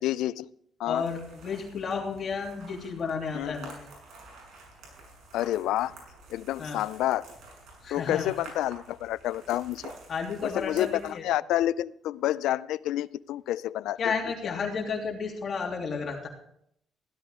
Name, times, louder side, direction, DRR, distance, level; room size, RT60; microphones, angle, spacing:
voice 1, 0.0-0.5 0.8-1.0 3.3-3.7 5.3-5.9 6.3-7.2 7.9-9.9 10.4-14.1 14.5-14.6, left 13 dB, 90° left, 18 dB, 0.4 m, -29 dB
voice 2, 0.9-3.9 6.6-6.8 7.8-8.3 10.1-11.2 14.0-16.3, left 5 dB, 50° left, 0 dB, 3.2 m, -32 dB
sound 1, 1.0-11.1, right 2 dB, 75° right, 7.1 m, -49 dB
16.0 x 12.5 x 3.7 m, 0.70 s
cardioid pair, 90°, 0 cm